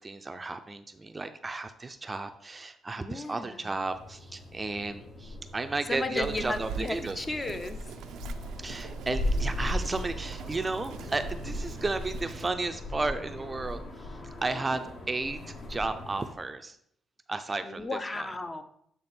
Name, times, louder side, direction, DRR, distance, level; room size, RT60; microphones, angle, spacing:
voice 1, 0.0-7.2 8.6-14.8 15.1-16.8 17.3-18.3, right 3 dB, 25° right, 9 dB, 0.5 m, -33 dB
voice 2, 3.0-3.7 5.9-8.0 17.6-18.6, left 2 dB, 20° left, 8 dB, 0.6 m, -34 dB
sound 1, 3.8-16.3, left 1 dB, 60° left, 1.7 m, -38 dB
Bird vocalization bird call bird song, 6.2-12.5, right 7 dB, 80° right, 0.4 m, -41 dB
8.1 x 3.5 x 4.3 m, 0.69 s
cardioid pair, 90°, 0 cm